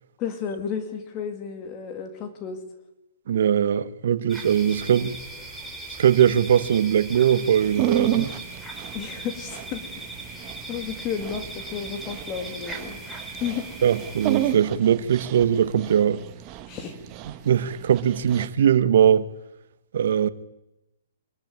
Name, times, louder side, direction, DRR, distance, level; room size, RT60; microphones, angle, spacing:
voice 1, 0.2-2.6 8.9-13.0 13.4-13.7 16.7-17.0, left 7 dB, 30° left, 2.5 m, -33 dB
voice 2, 3.3-5.2 6.0-8.3 13.8-16.2 17.4-19.3 19.9-20.3, right 9 dB, 60° right, 1.2 m, -20 dB
sound 1, 4.3-14.5, right 2 dB, ahead, 3.5 m, -39 dB
Dog, 7.6-18.5, right 13 dB, 30° right, 1.3 m, -32 dB
23.5 x 15.0 x 9.7 m
hypercardioid pair, 140°, 0 cm